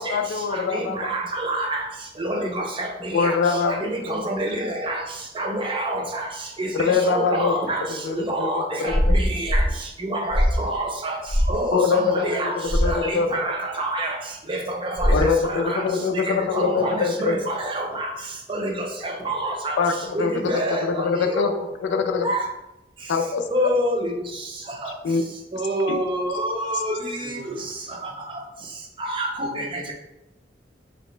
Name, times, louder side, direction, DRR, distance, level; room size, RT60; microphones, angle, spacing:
voice 1, 0.0-1.0 3.1-4.2 6.7-7.5 7.9-8.5 8.9-9.2 11.7-12.4 12.8-13.4 15.1-17.4 19.8-21.5 21.8-22.3 23.1-23.7 24.9-25.2 25.9-26.0, left 5 dB, 85° left, 6 dB, 0.3 m, -23 dB
voice 2, 0.7-1.8 2.2-3.3 3.8-5.0 5.4-6.2 6.6-6.7 7.1-7.8 8.1-9.6 10.0-11.2 11.5-12.6 12.9-14.2 14.5-15.1 15.5-15.8 16.3-18.1 18.5-19.8 20.1-21.5 22.2-22.4 23.5-24.1 25.5-27.0 29.1-29.3 29.6-29.7, right 1 dB, 30° right, 1 dB, 0.5 m, -27 dB
sound 1, 8.9-9.7 10.3-10.7 11.3-11.6 12.7-13.0 15.0-15.4, equal, 10° left, 0.5 m, -21 dB
voice 3, 27.2-28.2 28.6-28.7 29.4-29.9, equal, 80° right, 3 dB, 0.6 m, -41 dB
3.1 x 2.8 x 3.1 m, 0.94 s
head